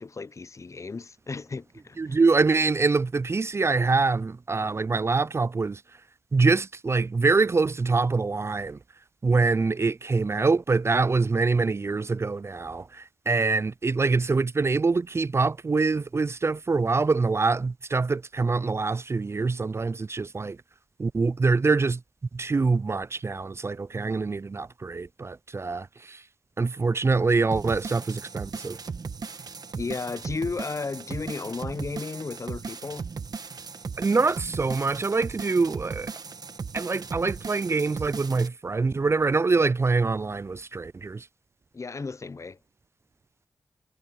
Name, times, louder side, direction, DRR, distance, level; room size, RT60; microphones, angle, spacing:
voice 1, 0.0-2.2 29.8-33.0 41.7-42.6, left 4 dB, 45° left, 0.6 m, -34 dB
voice 2, 2.0-5.8 6.3-8.8 9.2-20.6 21.0-22.0 22.3-26.2 26.6-28.8 34.0-36.1 36.7-41.3, right 4 dB, 35° right, 0.4 m, -25 dB
sound 1, 27.5-38.5, right 5 dB, 60° right, 1.2 m, -37 dB
cardioid pair, 45°, 7 cm